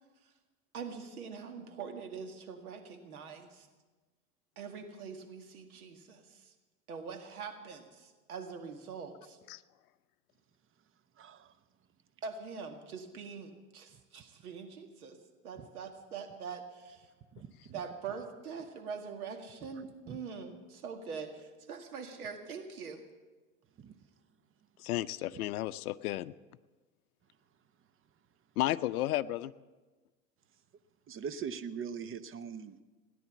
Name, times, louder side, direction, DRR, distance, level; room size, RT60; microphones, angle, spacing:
voice 1, 0.7-3.7 4.6-6.5 6.9-9.4 12.2-15.2 15.4-17.1 17.7-23.0, right 5 dB, 85° right, 5 dB, 2.0 m, -43 dB
voice 2, 11.2-11.5 15.6-15.7 16.8-17.0 17.3-17.8 18.1-18.2 19.7-20.2 23.8-24.0 31.1-32.8, right 7 dB, 30° right, 14 dB, 0.9 m, -42 dB
voice 3, 24.8-26.3 28.6-29.5, left 15 dB, 80° left, 13 dB, 0.6 m, -33 dB
17.5 x 10.0 x 7.2 m, 1.3 s
hypercardioid pair, 85°, 43 cm